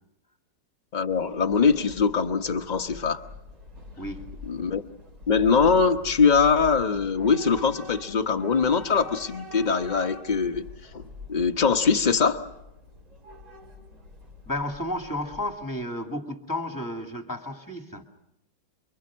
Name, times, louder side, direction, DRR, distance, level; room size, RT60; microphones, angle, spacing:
voice 1, 0.9-3.2 4.5-4.8 5.3-10.7 10.9-11.0 11.3-12.5, left 5 dB, 30° left, 1.0 m, -22 dB
Train / Subway metro underground, 1.1-15.8, left 3 dB, 50° right, 4.8 m, -44 dB
voice 2, 4.0-4.3 14.5-18.0, left 1 dB, 10° left, 2.2 m, -32 dB
28.0 x 24.0 x 6.2 m
omnidirectional pair, 1.9 m